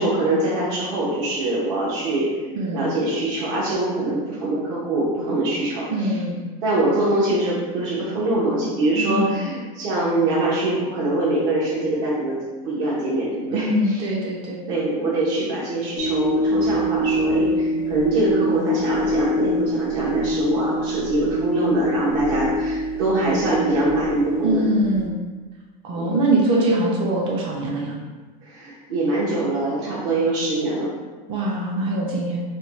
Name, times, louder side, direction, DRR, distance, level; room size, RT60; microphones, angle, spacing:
voice 1, 0.0-2.3 2.7-5.8 6.6-13.7 14.7-24.6 25.9-26.2 28.4-30.9, right 2 dB, 55° right, -7 dB, 1.0 m, -23 dB
voice 2, 5.9-6.4 9.0-9.4 13.5-14.6 23.1-23.5 24.4-25.2 25.8-28.0 31.3-32.4, right 1 dB, 25° right, -2 dB, 0.5 m, -23 dB
sound 1, 16.0-25.1, equal, 45° left, 0.5 m, -24 dB
4.4 x 2.2 x 4.2 m, 1.3 s
supercardioid pair, 175°, 20 cm